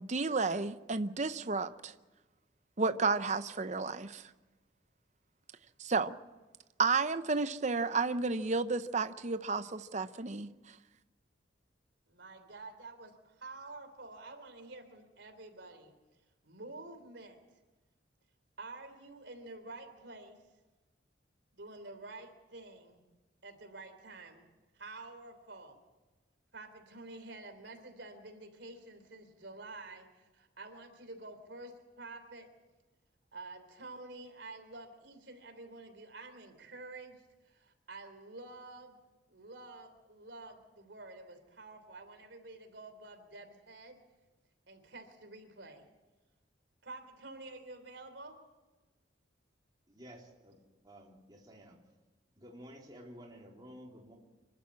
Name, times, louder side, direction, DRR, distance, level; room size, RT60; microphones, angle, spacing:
voice 1, 0.0-1.9 2.8-4.2 5.8-6.2 6.8-10.5, right 4 dB, 40° right, 12 dB, 0.7 m, -32 dB
voice 2, 12.1-15.9 16.4-17.4 18.6-20.4 21.5-23.0 23.4-24.4 24.7-25.8 26.5-32.5 33.3-39.0 39.3-44.0 44.7-45.8 46.8-48.4, right 2 dB, 70° right, 6 dB, 3.3 m, -49 dB
voice 3, 49.9-50.6 50.8-51.8 52.3-54.2, equal, 25° right, -2 dB, 3.8 m, -52 dB
26.0 x 12.0 x 8.5 m, 1.2 s
head